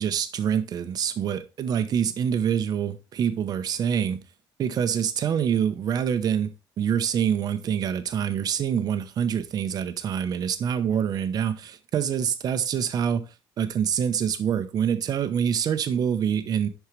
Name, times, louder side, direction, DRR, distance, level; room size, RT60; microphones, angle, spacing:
voice 1, 0.0-4.2 4.6-13.3 13.6-16.7, right 8 dB, 50° right, 0.9 m, -26 dB
11.0 x 4.6 x 3.3 m
cardioid pair, 130°, 9 cm